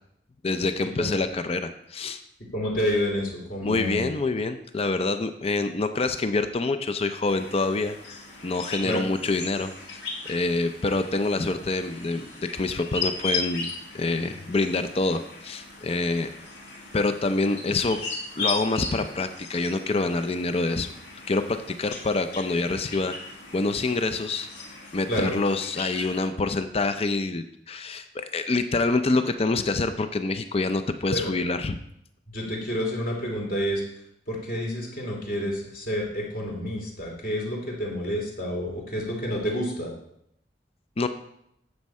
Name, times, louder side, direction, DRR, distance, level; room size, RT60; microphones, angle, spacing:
voice 1, 0.4-2.2 3.6-9.7 10.2-16.3 16.9-18.0 18.4-20.9 21.3-24.5 24.9-31.8 41.0-41.1, left 3 dB, 35° left, 9 dB, 0.5 m, -26 dB
voice 2, 2.5-4.1 8.8-9.1 25.1-25.3 31.1-31.3 32.3-33.8 34.3-39.9, equal, 55° left, -1 dB, 2.6 m, -29 dB
sound 1, 7.3-26.3, left 3 dB, 75° left, 2.0 m, -37 dB
9.7 x 7.3 x 4.3 m, 0.76 s
head